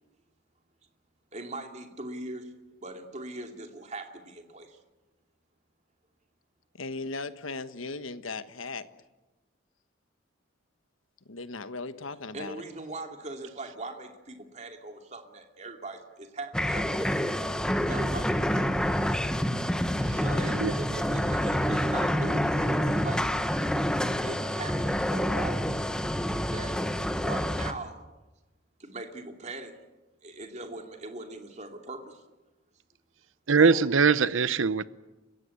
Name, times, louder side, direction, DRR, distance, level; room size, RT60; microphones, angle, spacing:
voice 1, 1.3-2.5 2.8-4.8 12.3-17.1 17.9-18.7 20.2-23.2 24.2-25.9 26.5-26.8 27.2-28.0 28.8-29.7 30.2-32.2 33.5-33.8, right 2 dB, 35° right, 2.6 m, -40 dB
voice 2, 6.7-8.9 11.3-12.6, left 3 dB, 85° left, 1.4 m, -37 dB
sound 1, 16.5-27.7, equal, 5° left, 1.1 m, -27 dB
voice 3, 33.5-34.8, right 5 dB, 75° right, 0.8 m, -22 dB
30.0 x 16.0 x 9.7 m
head